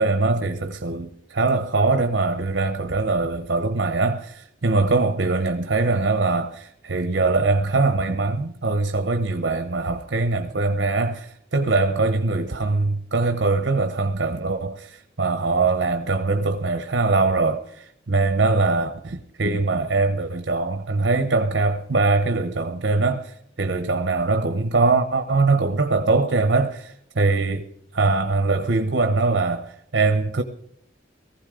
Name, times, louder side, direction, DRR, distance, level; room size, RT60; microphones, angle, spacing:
voice 1, 0.0-27.7 27.9-30.4, right 3 dB, 65° right, 0.9 m, -22 dB
19.0 x 14.5 x 3.8 m
head